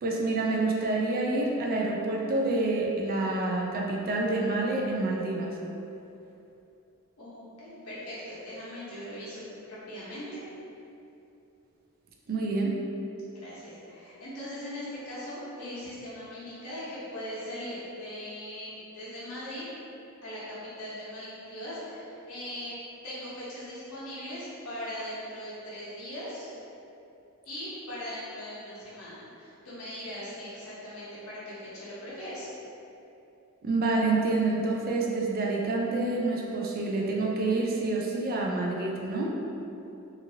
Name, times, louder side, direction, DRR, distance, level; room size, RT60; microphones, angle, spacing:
voice 1, 0.0-5.6 12.3-12.8 33.6-39.3, right 2 dB, 45° right, -1 dB, 0.4 m, -27 dB
voice 2, 7.2-9.4 9.7-10.4 13.1-19.6 20.2-22.8 23.0-26.5 27.4-32.5, equal, 75° left, -10 dB, 1.1 m, -40 dB
2.8 x 2.6 x 2.7 m, 2.8 s
head